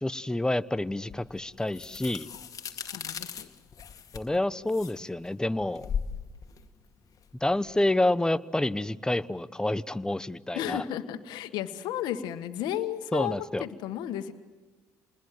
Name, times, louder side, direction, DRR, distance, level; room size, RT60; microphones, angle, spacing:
voice 1, 0.0-2.3 4.1-5.9 7.4-10.8 13.1-13.6, left 1 dB, 10° left, 15 dB, 1.0 m, -28 dB
sound 1, 1.1-7.9, left 7 dB, 50° left, 2.0 m, -39 dB
voice 2, 2.7-3.5 10.5-14.3, left 11 dB, 80° left, 10 dB, 1.6 m, -33 dB
28.5 x 21.0 x 7.7 m, 1.2 s
supercardioid pair, 65°, 7 cm